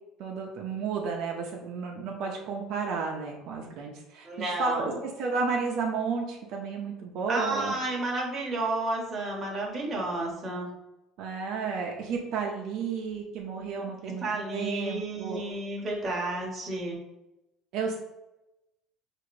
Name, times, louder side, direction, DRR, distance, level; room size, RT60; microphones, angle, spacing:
voice 1, 0.2-7.7 11.2-14.2 14.5-15.4 17.7-18.0, right 5 dB, 60° right, 0 dB, 0.6 m, -32 dB
voice 2, 4.2-5.0 7.3-10.7 14.0-17.0, right 2 dB, 20° right, -2 dB, 0.9 m, -31 dB
4.8 x 2.5 x 3.1 m, 0.94 s
cardioid pair, 165°, 0 cm